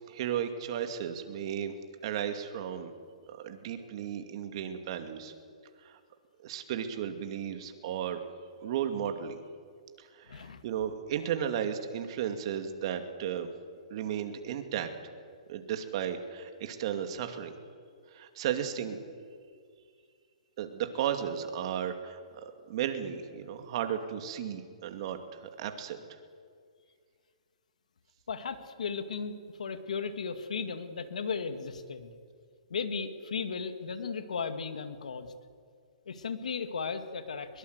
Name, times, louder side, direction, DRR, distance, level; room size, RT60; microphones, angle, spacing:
voice 1, 0.1-1.7 2.0-2.9 3.3-5.3 5.8-6.0 6.4-8.2 8.6-9.4 10.0-13.5 13.9-14.9 15.5-17.5 18.1-19.0 20.6-26.0, right 9 dB, 50° right, 7 dB, 2.4 m, -34 dB
voice 2, 10.3-10.6 28.3-32.1 32.7-35.3 36.1-37.6, left 5 dB, 85° left, 9 dB, 2.2 m, -36 dB
22.5 x 22.0 x 8.2 m, 2.1 s
hypercardioid pair, 145°, 4 cm